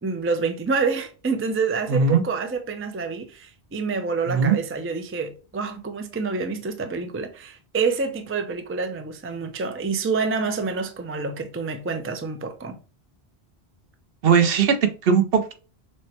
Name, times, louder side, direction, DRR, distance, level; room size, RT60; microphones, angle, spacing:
voice 1, 0.0-12.8, right 4 dB, 20° right, 0.3 m, -27 dB
voice 2, 1.9-2.2 4.3-4.6 14.2-15.5, right 6 dB, 65° right, 0.9 m, -19 dB
6.2 x 2.1 x 2.8 m
omnidirectional pair, 1.1 m